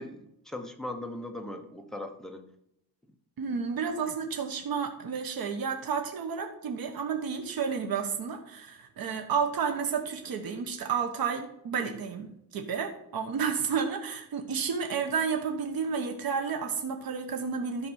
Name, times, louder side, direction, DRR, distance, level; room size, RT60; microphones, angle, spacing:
voice 1, 0.0-2.5 3.5-3.6, left 1 dB, ahead, 4 dB, 1.1 m, -39 dB
voice 2, 3.4-17.9, right 6 dB, 70° right, 5 dB, 1.3 m, -31 dB
12.5 x 4.8 x 6.4 m, 0.78 s
wide cardioid pair, 145°, 37 cm